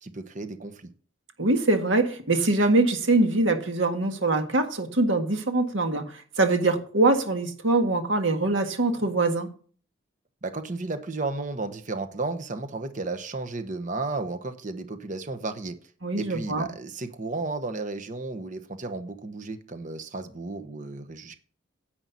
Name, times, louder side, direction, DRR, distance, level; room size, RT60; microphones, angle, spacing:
voice 1, 0.0-0.9 10.4-15.8 16.2-21.4, right 3 dB, 40° right, 8 dB, 1.1 m, -33 dB
voice 2, 1.4-6.0 6.4-9.5 16.0-16.7, right 2 dB, 70° right, 6 dB, 1.8 m, -23 dB
10.5 x 7.9 x 4.1 m, 0.43 s
head